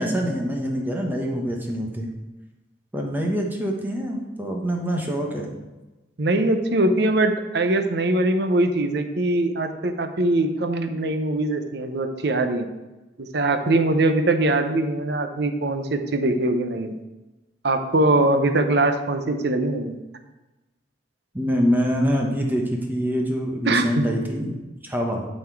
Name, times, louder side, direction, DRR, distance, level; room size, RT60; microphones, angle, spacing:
voice 1, 0.0-2.1 2.9-5.6 21.3-25.3, equal, 10° right, 1 dB, 1.0 m, -25 dB
voice 2, 6.2-12.7 13.2-17.0 17.6-19.9 23.7-24.1, right 2 dB, 65° right, 7 dB, 0.8 m, -22 dB
11.5 x 4.4 x 4.6 m, 1.1 s
head